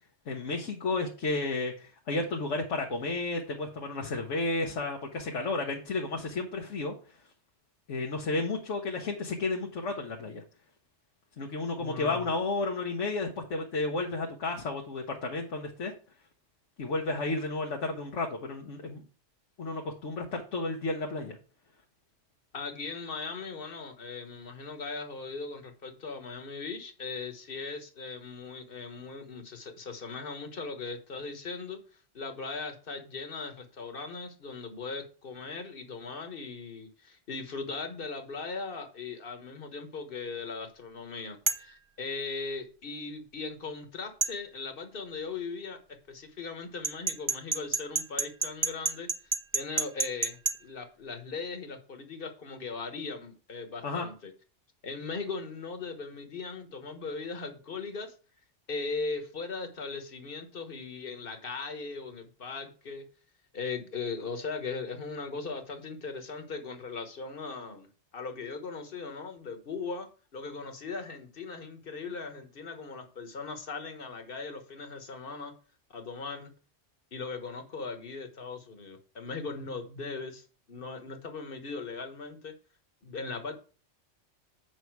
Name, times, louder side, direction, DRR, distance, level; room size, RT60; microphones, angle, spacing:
voice 1, 0.3-6.9 7.9-10.4 11.4-15.9 16.8-19.0 19.6-21.3 53.8-54.1, left 3 dB, 85° left, 1 dB, 1.5 m, -32 dB
voice 2, 11.7-12.3 22.5-31.8 32.1-54.3 54.8-58.1 58.7-63.1 63.5-75.5 75.9-76.5 77.1-82.5 83.0-83.5, left 4 dB, 50° left, 7 dB, 1.4 m, -39 dB
sound 1, 41.5-41.7 44.2-44.4 46.8-50.6, right 4 dB, 35° right, 0.5 m, -29 dB
8.1 x 5.5 x 4.6 m, 0.38 s
omnidirectional pair, 1.2 m